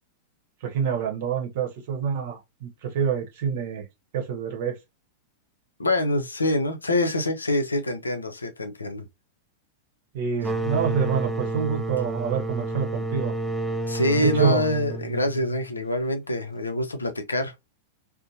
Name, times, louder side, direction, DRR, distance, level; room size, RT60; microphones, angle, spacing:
voice 1, 0.6-3.8 4.1-4.7 10.1-13.3 14.2-14.6, right 7 dB, 55° right, 0.8 m, -26 dB
voice 2, 5.8-9.1 10.6-10.7 13.9-17.5, left 1 dB, 85° left, 0.5 m, -25 dB
sound 1, 10.4-15.9, right 2 dB, 10° right, 0.4 m, -30 dB
2.6 x 2.1 x 2.7 m
figure-of-eight pair, 95°, 0 cm